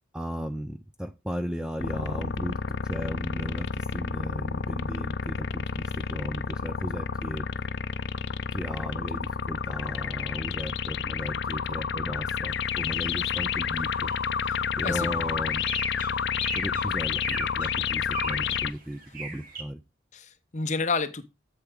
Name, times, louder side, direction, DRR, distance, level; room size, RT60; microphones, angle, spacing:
voice 1, 0.1-7.5 8.5-14.1 14.8-15.7 16.5-19.8, equal, 5° right, 0.4 m, -36 dB
sound 1, 1.8-18.7, left 6 dB, 60° left, 0.5 m, -30 dB
sound 2, 12.5-12.6 12.9-19.6, right 4 dB, 45° right, 1.8 m, -40 dB
voice 2, 14.5-15.1 20.1-21.3, left 4 dB, 40° left, 0.8 m, -30 dB
8.2 x 7.0 x 3.6 m
head